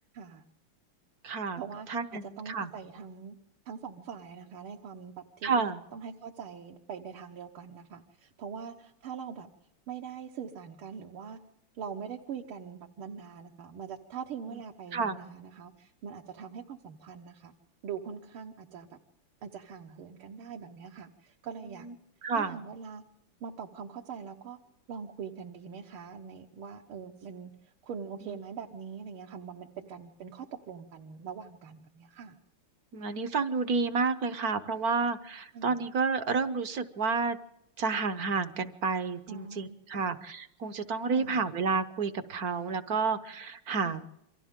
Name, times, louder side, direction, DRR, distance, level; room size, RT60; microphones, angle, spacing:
voice 1, 0.1-0.4 1.6-3.4 3.7-9.5 9.9-11.4 11.8-17.5 17.8-19.0 19.4-21.9 22.3-23.0 23.4-24.6 24.9-32.4 35.5-35.8 39.3-40.2 41.1-41.4 43.8-44.1, right 7 dB, 75° right, 2 dB, 2.1 m, -43 dB
voice 2, 1.2-1.6 1.9-2.7 5.4-5.8 14.9-15.2 22.2-22.6 32.9-37.4 37.8-44.0, right 4 dB, 50° right, 10 dB, 1.3 m, -30 dB
28.5 x 24.5 x 3.7 m, 0.79 s
omnidirectional pair, 2.4 m